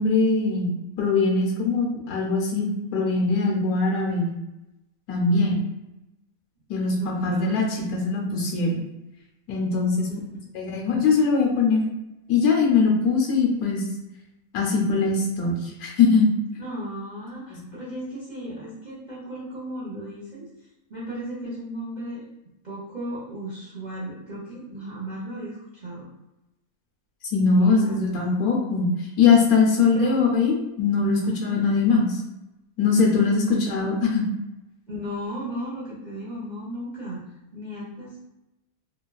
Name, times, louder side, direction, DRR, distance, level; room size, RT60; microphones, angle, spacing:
voice 1, 0.0-4.4 5.1-5.6 6.7-7.6 7.9-8.8 9.5-10.1 10.5-11.8 12.3-13.8 14.5-16.3 27.3-28.9 29.2-32.2 32.8-34.3, left 4 dB, 75° left, -1 dB, 1.1 m, -21 dB
voice 2, 7.0-7.6 10.1-10.2 16.6-20.5 20.9-22.2 22.6-26.1 27.6-28.4 29.8-30.2 31.2-31.6 33.5-33.7 34.9-37.2 37.5-38.2, right 1 dB, 45° right, -9 dB, 0.5 m, -35 dB
3.0 x 2.2 x 2.3 m, 0.95 s
omnidirectional pair, 1.6 m